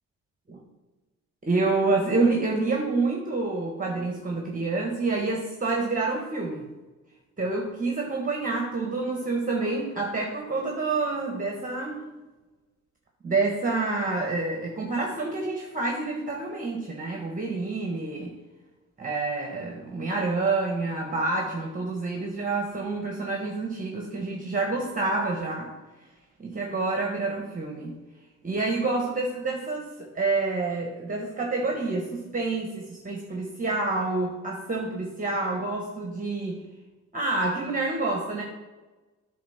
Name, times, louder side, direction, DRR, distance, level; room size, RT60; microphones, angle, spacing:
voice 1, 1.4-6.7 7.4-12.1 13.2-18.3 19.0-25.7 26.4-27.9 28.4-36.6 37.1-38.4, right 3 dB, 25° right, 0 dB, 1.3 m, -28 dB
9.5 x 3.6 x 5.7 m, 1.2 s
cardioid pair, 90°, 30 cm